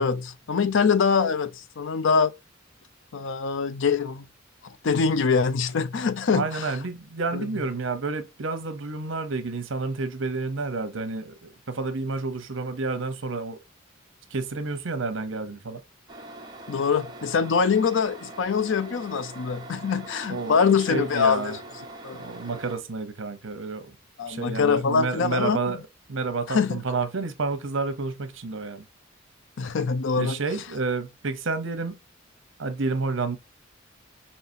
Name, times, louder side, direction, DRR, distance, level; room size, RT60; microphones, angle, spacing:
voice 1, 0.0-2.3 3.1-4.2 4.6-6.8 7.3-7.5 16.7-21.6 22.0-22.2 24.2-25.6 26.5-26.8 29.6-30.4, left 5 dB, 65° left, 0.5 m, -24 dB
voice 2, 6.3-11.3 11.7-13.6 14.3-15.8 20.3-20.6 20.9-21.6 22.2-23.9 24.3-25.8 26.1-28.8 30.2-32.0 32.6-33.4, right 3 dB, 70° right, 0.8 m, -30 dB
sound 1, 16.1-22.8, right 2 dB, 20° right, 0.9 m, -43 dB
5.6 x 2.9 x 2.7 m
head